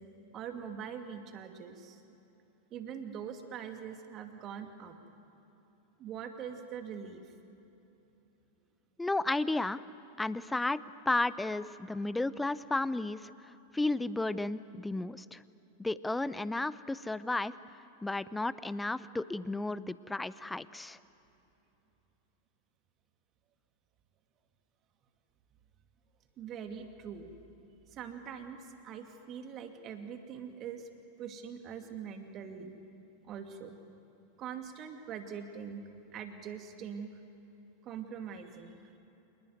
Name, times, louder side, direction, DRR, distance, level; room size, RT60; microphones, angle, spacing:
voice 1, 0.3-2.0 2.7-5.0 6.0-7.3 26.4-27.4 27.9-30.9 31.2-32.8 33.2-33.8 34.4-37.2 37.8-38.8, right 7 dB, 35° right, 6 dB, 2.4 m, -43 dB
voice 2, 9.0-9.8 10.2-13.2 13.7-15.4 15.8-17.5 18.0-21.0, left 2 dB, 5° left, 17 dB, 0.6 m, -33 dB
27.0 x 20.5 x 9.5 m, 3.0 s
figure-of-eight pair, 90°, 0 cm